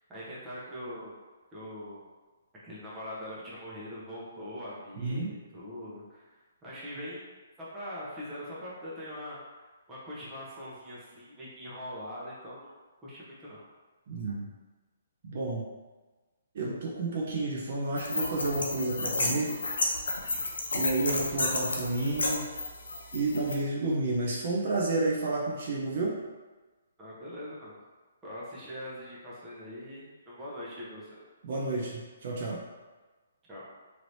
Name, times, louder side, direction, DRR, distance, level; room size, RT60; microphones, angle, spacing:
voice 1, 0.1-1.1 1.5-2.0 2.6-9.4 9.9-12.7 13.0-13.6 27.0-27.7 28.2-31.2 33.5-33.7, equal, 15° right, -8 dB, 0.8 m, -42 dB
voice 2, 4.9-5.3 14.1-14.5 15.2-15.7 16.5-19.5 20.7-22.5 23.1-26.2 31.4-32.6, right 2 dB, 50° right, -4 dB, 0.6 m, -30 dB
sound 1, 18.0-23.5, left 2 dB, 90° left, 0.6 m, -32 dB
3.2 x 2.9 x 2.6 m, 1.3 s
hypercardioid pair, 160°, 0 cm